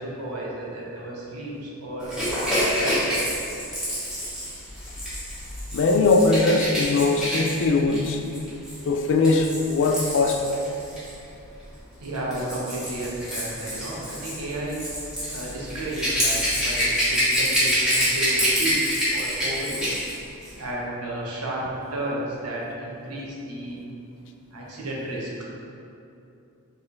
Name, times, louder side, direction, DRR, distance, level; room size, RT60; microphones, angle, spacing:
voice 1, 0.0-3.2 12.0-14.9 15.3-19.9 20.6-23.8 24.5-25.3, right 1 dB, 85° right, -4 dB, 0.9 m, -33 dB
Rattle / Rattle (instrument), 2.1-11.1 12.0-20.1 20.4-20.6, equal, 5° right, 1.1 m, -27 dB
voice 2, 5.7-8.2 8.9-10.6, left 3 dB, 55° left, 4 dB, 0.4 m, -20 dB
4.5 x 3.2 x 3.2 m, 2.7 s
head